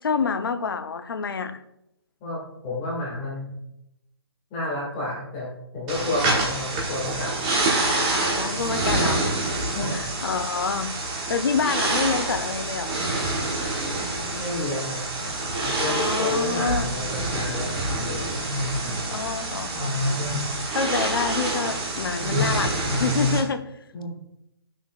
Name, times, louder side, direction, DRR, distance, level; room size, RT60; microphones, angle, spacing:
voice 1, 0.0-1.6 8.3-9.3 9.9-10.9 11.3-13.0 15.8-16.9 19.1-20.2 20.7-23.6, left 5 dB, 60° left, 9 dB, 0.8 m, -27 dB
voice 2, 2.2-3.5 4.5-7.3 8.5-9.1 9.7-10.0 14.1-15.3 15.6-18.2 23.9-24.2, left 2 dB, 15° left, -5 dB, 2.1 m, -31 dB
sound 1, 5.9-23.4, right 2 dB, 15° right, 1.1 m, -26 dB
14.5 x 6.3 x 2.4 m, 0.84 s
hypercardioid pair, 175°, 13 cm